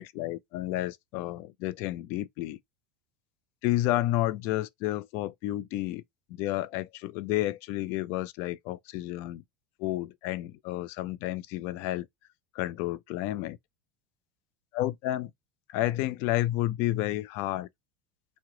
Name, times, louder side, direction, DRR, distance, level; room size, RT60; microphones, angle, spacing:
voice 1, 0.0-2.6 3.6-6.0 6.4-9.4 9.8-12.1 12.5-13.6 14.7-15.3 15.7-17.7, left 15 dB, 60° left, 0.4 m, -31 dB
3.0 x 2.1 x 3.7 m
supercardioid pair, 115°, 5 cm